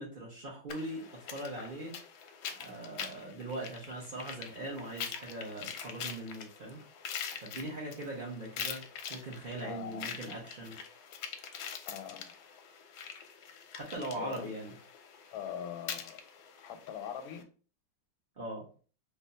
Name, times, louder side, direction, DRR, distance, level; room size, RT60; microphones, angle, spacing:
voice 1, 0.0-1.9 2.6-6.8 7.4-8.8 9.1-10.8 13.7-14.7 18.4-18.6, right 1 dB, 65° right, 0.5 m, -40 dB
sound 1, 0.7-17.4, left 7 dB, 70° left, 1.0 m, -44 dB
voice 2, 9.6-10.2 11.9-12.4 14.2-14.5 15.3-16.2 16.6-17.5, left 9 dB, 90° left, 1.4 m, -42 dB
3.3 x 2.2 x 3.8 m
omnidirectional pair, 2.1 m